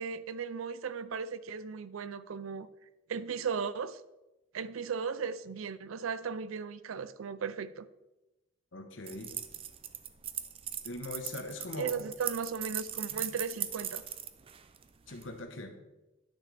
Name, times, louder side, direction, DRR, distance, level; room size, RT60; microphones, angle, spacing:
voice 1, 0.0-2.7 3.1-4.0 4.5-7.9 11.8-14.0, right 6 dB, 85° right, 15 dB, 0.4 m, -36 dB
voice 2, 8.7-9.3 10.8-11.9 15.1-15.7, left 2 dB, 65° left, 7 dB, 1.0 m, -41 dB
sound 1, 9.1-15.3, right 10 dB, 30° right, 0.4 m, -39 dB
10.0 x 6.2 x 3.4 m, 1.0 s
head